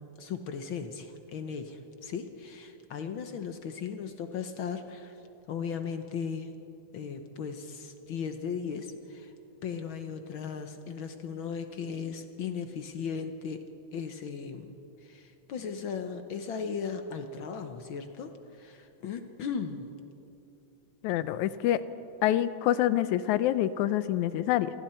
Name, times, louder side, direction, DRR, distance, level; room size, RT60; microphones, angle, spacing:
voice 1, 0.2-5.2 5.5-6.5 6.9-9.3 9.6-13.6 13.9-19.9, left 6 dB, 65° left, 7 dB, 1.3 m, -37 dB
voice 2, 21.0-21.8 22.2-24.7, left 12 dB, 90° left, 14 dB, 2.1 m, -26 dB
27.5 x 22.5 x 4.4 m, 2.8 s
omnidirectional pair, 3.3 m